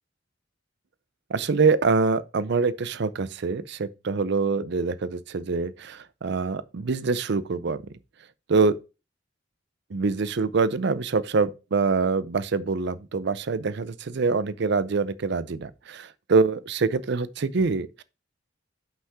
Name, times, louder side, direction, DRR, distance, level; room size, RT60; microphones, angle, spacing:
voice 1, 1.3-7.8 8.5-8.8 9.9-18.0, right 4 dB, 65° right, 0.5 m, -25 dB
5.7 x 5.7 x 4.8 m
head